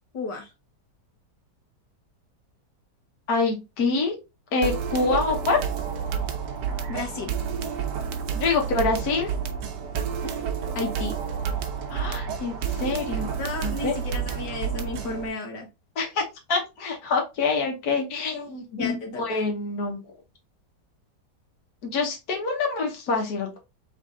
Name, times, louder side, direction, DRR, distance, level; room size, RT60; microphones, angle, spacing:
voice 1, 0.1-0.5 6.9-7.3 10.2-10.3 10.8-11.1 13.4-15.7 18.7-19.4, left 3 dB, 85° left, 2 dB, 1.8 m, -33 dB
voice 2, 3.3-4.1 4.5-5.6 8.3-9.3 11.9-13.3 13.6-13.9 15.9-16.2 16.5-20.0 21.8-23.6, left 4 dB, 65° left, 1 dB, 1.7 m, -26 dB
sound 1, 4.6-15.3, right 7 dB, 85° right, 1.4 m, -30 dB
4.1 x 3.3 x 3.7 m, 0.25 s
omnidirectional pair, 1.8 m